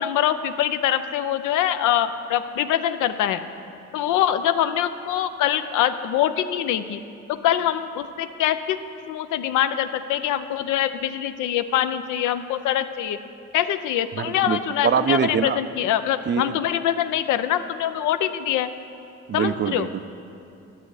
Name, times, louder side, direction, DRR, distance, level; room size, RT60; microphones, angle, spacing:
voice 1, 0.0-3.4 3.9-7.0 7.3-8.8 9.1-13.2 13.5-18.7 19.3-19.9, left 11 dB, 90° left, 11 dB, 0.5 m, -24 dB
voice 2, 14.2-15.6 16.3-16.6 19.3-20.0, right 8 dB, 40° right, 13 dB, 0.4 m, -24 dB
12.0 x 7.7 x 4.8 m, 2.7 s
cardioid pair, 90°, 30 cm